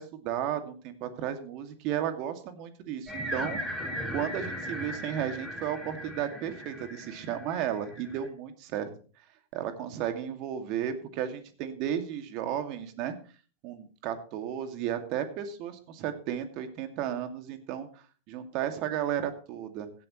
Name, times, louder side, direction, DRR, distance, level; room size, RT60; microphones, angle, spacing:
voice 1, 0.0-8.9 9.5-13.1 13.6-19.9, right 10 dB, 50° right, 8 dB, 2.3 m, -34 dB
sound 1, 3.1-8.3, equal, 5° right, 4.9 m, -37 dB
16.0 x 12.0 x 3.2 m, 0.38 s
hypercardioid pair, 100°, 0 cm